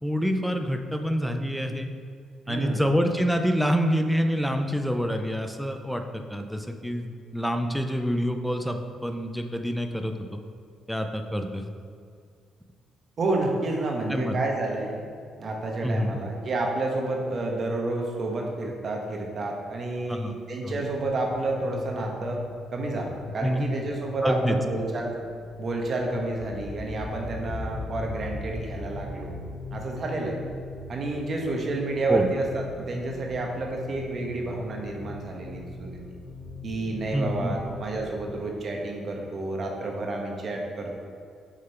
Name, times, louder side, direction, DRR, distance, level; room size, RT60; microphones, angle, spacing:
voice 1, 0.0-1.9 2.5-10.4 10.9-11.7 14.1-14.4 15.8-16.2 20.1-20.3 20.6-20.8 23.4-23.7 24.2-24.6 32.1-32.3 37.1-37.6, equal, ahead, 5 dB, 0.5 m, -27 dB
voice 2, 2.4-2.8 13.2-15.1 15.4-22.4 22.7-25.1 25.6-29.3 29.7-30.4 30.9-36.0 36.6-41.0, right 2 dB, 50° right, 0 dB, 1.2 m, -30 dB
sound 1, 20.7-38.4, left 2 dB, 35° left, 0.8 m, -39 dB
6.3 x 3.9 x 4.5 m, 2.2 s
cardioid pair, 90°, 0 cm